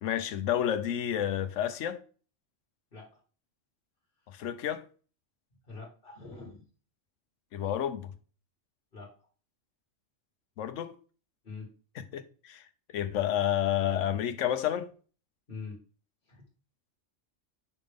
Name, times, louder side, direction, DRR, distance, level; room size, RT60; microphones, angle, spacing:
voice 1, 0.0-2.0 4.3-4.8 7.5-8.1 10.6-11.0 12.1-12.6 12.9-14.9, left 10 dB, 85° left, 1.0 m, -30 dB
voice 2, 2.9-3.2 5.6-6.6 8.9-9.1 11.4-11.7 15.5-15.8 16.3-16.4, left 4 dB, 45° left, 1.9 m, -44 dB
5.8 x 5.1 x 3.5 m
omnidirectional pair, 1.2 m